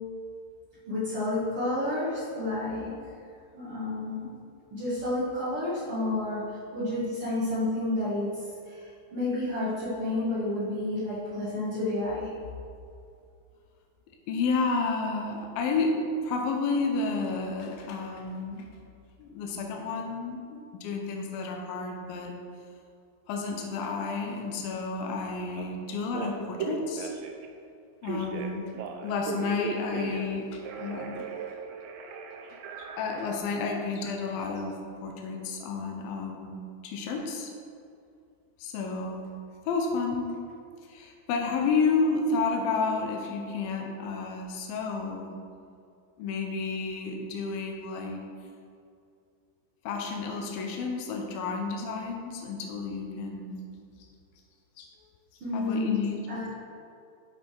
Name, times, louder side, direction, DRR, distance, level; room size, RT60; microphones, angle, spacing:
voice 1, 0.9-2.9 3.5-4.3 4.7-8.3 8.6-12.3 55.4-56.0 56.3-56.6, left 2 dB, 45° right, -12 dB, 2.8 m, -30 dB
voice 2, 14.3-18.7 19.2-22.3 23.3-27.1 28.0-28.7 29.0-31.3 32.8-36.6 36.8-37.5 38.6-39.3 39.7-40.3 40.9-45.3 46.2-48.2 49.9-53.6 54.8-54.9 55.5-56.2, left 4 dB, 85° left, 2 dB, 2.7 m, -31 dB
Telephone, 25.6-25.7 26.1-27.5 28.0-30.3 30.6-33.4, right 5 dB, 80° right, 2.4 m, -37 dB
10.5 x 5.4 x 4.6 m, 2.4 s
omnidirectional pair, 4.0 m